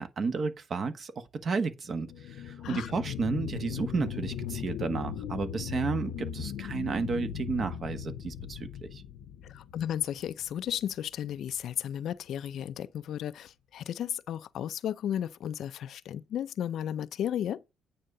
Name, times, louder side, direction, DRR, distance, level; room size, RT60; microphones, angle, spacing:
voice 1, 0.0-9.0, right 4 dB, 45° right, 1.2 m, -32 dB
sound 1, 1.8-10.9 11.4-11.5, left 9 dB, 85° left, 0.8 m, -38 dB
voice 2, 9.4-17.6, left 10 dB, 65° left, 0.4 m, -34 dB
9.1 x 3.7 x 6.7 m
cardioid pair, 120°, 0 cm